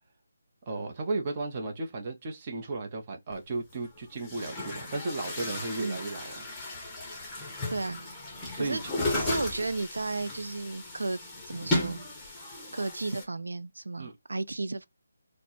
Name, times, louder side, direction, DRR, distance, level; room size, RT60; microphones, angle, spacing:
voice 1, 0.7-6.5 8.5-8.9 14.0-14.1, right 3 dB, 25° right, 0.7 m, -34 dB
Chatter / Gurgling / Tap, 3.3-3.4 4.1-13.2, left 2 dB, 10° left, 0.9 m, -35 dB
voice 2, 9.1-11.2 11.5-12.0 12.7-14.9, right 3 dB, 85° right, 0.4 m, -33 dB
4.2 x 2.1 x 2.8 m
figure-of-eight pair, 165°, 0 cm